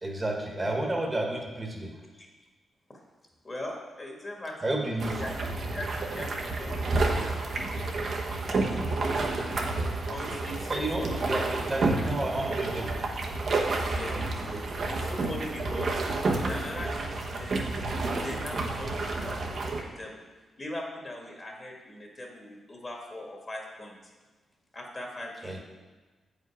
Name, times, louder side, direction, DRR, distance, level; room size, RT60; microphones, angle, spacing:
voice 1, 0.0-1.9 4.6-5.2 10.7-13.0 25.4-25.6, right 1 dB, 25° right, 1 dB, 1.4 m, -31 dB
voice 2, 3.4-4.8 5.2-5.3 5.7-6.9 7.2-7.9 10.0-11.2 13.8-16.0 16.4-17.9 18.2-20.1 20.6-24.0 24.7-25.6, left 1 dB, 30° left, 0 dB, 1.8 m, -40 dB
sound 1, 5.0-19.8, right 3 dB, 60° right, 1.1 m, -30 dB
7.9 x 5.2 x 4.9 m, 1.3 s
cardioid pair, 75°, 0 cm